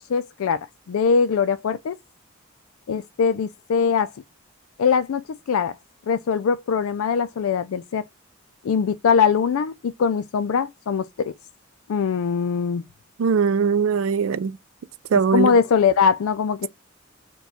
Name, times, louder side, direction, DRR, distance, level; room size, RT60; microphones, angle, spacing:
voice 1, 0.1-2.0 2.9-4.1 4.8-5.2 5.5-5.8 6.1-8.0 8.6-11.3 11.9-12.8 15.3-16.7, left 6 dB, 85° left, 0.4 m, -21 dB
voice 2, 13.2-14.5 15.1-15.5, right 5 dB, 75° right, 0.4 m, -20 dB
4.5 x 2.2 x 4.1 m
head